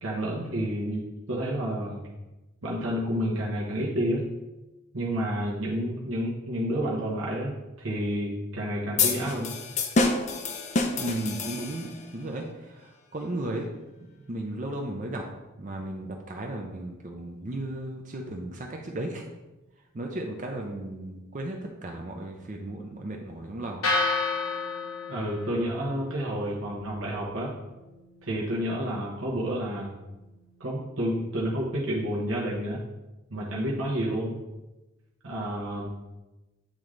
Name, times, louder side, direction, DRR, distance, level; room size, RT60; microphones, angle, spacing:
voice 1, 0.0-2.0 2.6-4.2 4.9-9.5 25.1-27.5 28.2-30.0 30.6-32.8 33.3-34.3 35.2-35.9, equal, 80° right, -4 dB, 1.0 m, -30 dB
sound 1, 9.0-12.0, left 3 dB, 35° left, 0.5 m, -27 dB
voice 2, 11.0-13.7 14.3-15.2 15.6-19.2 19.9-23.8, right 1 dB, 35° right, 1 dB, 0.5 m, -35 dB
sound 2, 23.8-32.0, left 3 dB, 90° left, 1.2 m, -35 dB
8.8 x 3.8 x 3.2 m, 1.1 s
head